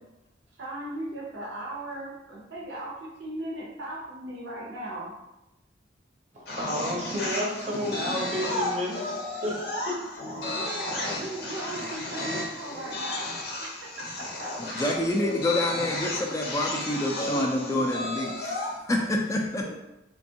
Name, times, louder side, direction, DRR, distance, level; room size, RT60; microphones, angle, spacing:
voice 1, 0.6-5.1 10.3-14.5 19.6-19.7, right 1 dB, 85° right, -3 dB, 0.6 m, -37 dB
voice 2, 6.3-10.0, equal, 35° right, -4 dB, 0.6 m, -31 dB
sound 1, 6.5-18.8, left 2 dB, 55° left, 0.6 m, -33 dB
sound 2, 6.5-11.5, right 2 dB, ahead, 0.7 m, -48 dB
voice 3, 14.7-19.7, left 1 dB, 15° left, 1 dB, 0.3 m, -27 dB
3.3 x 2.2 x 2.7 m, 0.94 s
head